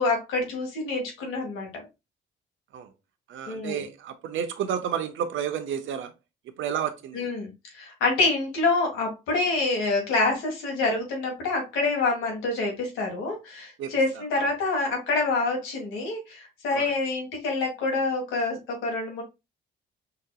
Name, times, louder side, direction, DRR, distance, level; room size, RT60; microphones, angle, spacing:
voice 1, 0.0-1.9 3.5-3.8 7.1-19.2, left 3 dB, 90° left, 1.6 m, -27 dB
voice 2, 3.3-6.1 6.6-7.3 13.8-14.0 14.4-14.5 16.7-16.9, right 8 dB, 75° right, 0.7 m, -31 dB
5.0 x 2.8 x 2.3 m
cardioid pair, 90°, 20 cm